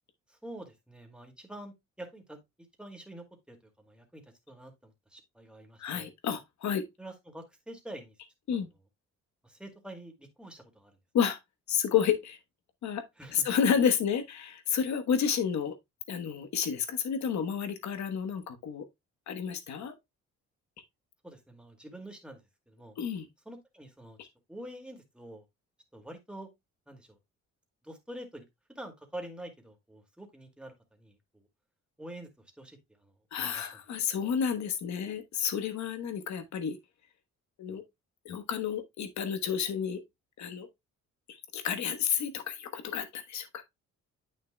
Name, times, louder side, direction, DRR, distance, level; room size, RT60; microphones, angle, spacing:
voice 1, 0.3-2.4 2.8-6.1 7.0-8.2 8.5-8.7 9.4-10.9 13.2-13.5 21.2-22.4 22.7-23.0 23.5-24.2 24.5-25.4 25.9-26.5 26.9-27.2 27.8-31.5 32.0-33.8, right 1 dB, 5° right, 2.2 m, -47 dB
voice 2, 5.8-6.8 8.5-8.7 11.1-11.4 11.7-12.4 12.8-13.0 13.3-15.7 16.1-18.8 19.3-19.9 23.0-23.3 24.2-24.3 33.3-36.8 37.6-37.8 38.2-40.0 40.4-40.7 41.3-43.5, left 7 dB, 65° left, 1.2 m, -30 dB
8.6 x 6.4 x 2.2 m
cardioid pair, 90°, 30 cm